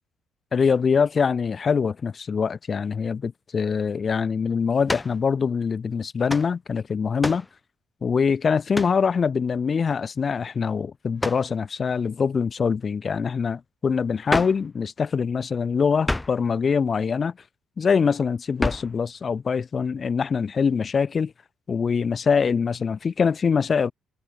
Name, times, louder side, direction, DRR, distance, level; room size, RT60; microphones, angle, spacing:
voice 1, 0.5-7.4 8.0-17.3 17.8-21.3 21.7-23.9, left 6 dB, 35° left, 6.4 m, -24 dB
sound 1, 4.9-5.2 6.3-6.5 7.2-7.5 8.7-9.0 11.2-11.5 14.3-14.7 16.0-16.4 18.6-19.0, left 2 dB, 10° left, 3.0 m, -28 dB
cardioid pair, 120°, 0 cm